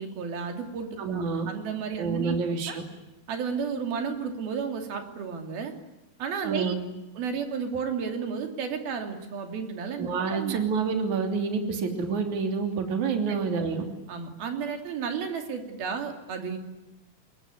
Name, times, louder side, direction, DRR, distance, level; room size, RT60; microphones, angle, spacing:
voice 1, 0.0-2.4 2.7-2.8 3.3-5.7 6.2-6.7 7.2-10.6 13.3-13.4 14.1-16.6, right 6 dB, 75° right, 5 dB, 4.7 m, -32 dB
voice 2, 1.0-1.5 2.0-2.8 6.4-6.8 10.0-13.9, right 5 dB, 55° right, 4 dB, 4.3 m, -28 dB
27.5 x 22.0 x 9.8 m, 0.99 s
omnidirectional pair, 4.3 m